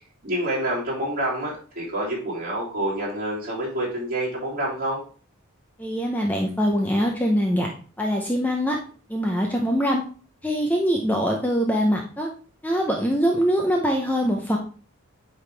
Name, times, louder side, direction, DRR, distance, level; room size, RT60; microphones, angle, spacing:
voice 1, 0.2-5.0, right 1 dB, 40° right, -6 dB, 3.1 m, -27 dB
voice 2, 5.8-7.7 8.0-8.8 9.1-10.0 10.4-12.3 12.6-14.6, equal, 10° left, 1 dB, 0.6 m, -23 dB
8.6 x 3.7 x 3.3 m, 0.39 s
head